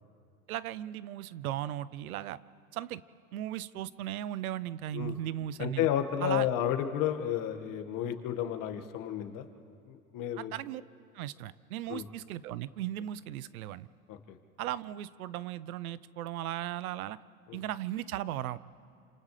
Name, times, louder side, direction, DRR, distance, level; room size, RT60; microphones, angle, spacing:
voice 1, 0.5-2.4 2.7-3.0 3.3-5.9 6.2-6.5 10.4-10.8 11.1-13.9 14.6-17.2 17.5-18.6, right 12 dB, 75° right, 18 dB, 0.7 m, -37 dB
voice 2, 5.6-9.5 9.9-10.5 11.9-12.1 14.1-14.4 17.5-17.6, left 10 dB, 45° left, 7 dB, 1.8 m, -32 dB
29.0 x 27.0 x 3.3 m, 2.3 s
hypercardioid pair, 95°, 43 cm